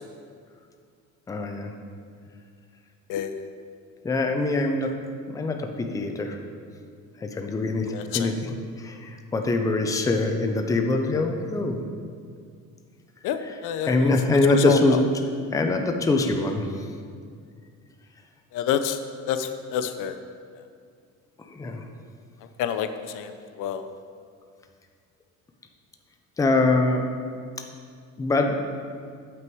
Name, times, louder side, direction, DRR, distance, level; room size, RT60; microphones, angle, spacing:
voice 1, 1.3-1.7 4.0-4.9 5.3-6.4 7.2-8.5 8.8-11.8 13.5-13.6 13.9-15.0 15.5-16.7 21.5-21.8 26.4-27.0 28.2-28.6, left 2 dB, 10° left, 4 dB, 0.5 m, -23 dB
voice 2, 3.1-3.4 7.9-8.3 13.2-14.1 14.7-14.8 18.5-19.0 19.3-20.2 22.6-22.9 23.1-23.3 23.6-23.8, left 10 dB, 80° left, 9 dB, 0.6 m, -27 dB
7.7 x 6.0 x 4.6 m, 2.2 s
cardioid pair, 150°, 31 cm